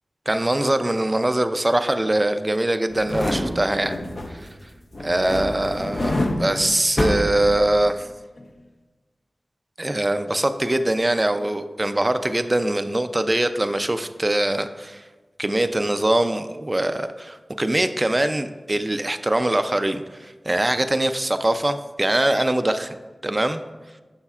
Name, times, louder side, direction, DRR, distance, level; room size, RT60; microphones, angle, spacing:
voice 1, 0.3-3.9 4.3-4.5 5.0-8.1 9.8-15.0 15.4-23.0 23.2-23.6, right 1 dB, 25° right, 9 dB, 0.4 m, -22 dB
sound 1, 2.9-4.6 4.9-8.0 8.4-8.5, left 1 dB, 60° left, 0.8 m, -27 dB
9.7 x 6.5 x 2.4 m, 1.3 s
wide cardioid pair, 80°, 0 cm